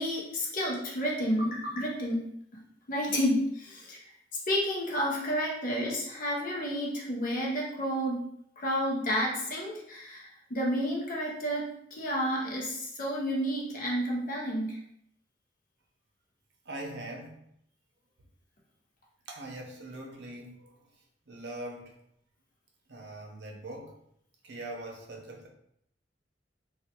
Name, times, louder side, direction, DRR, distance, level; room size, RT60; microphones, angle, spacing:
voice 1, 0.0-2.3 2.9-4.0 4.5-8.2 8.6-14.8, equal, 50° left, -3 dB, 0.7 m, -30 dB
voice 2, 16.7-17.4 19.3-20.8 21.3-22.0 22.9-24.0 24.4-25.5, right 1 dB, 65° right, 1 dB, 0.6 m, -42 dB
3.4 x 2.4 x 2.8 m, 0.72 s
head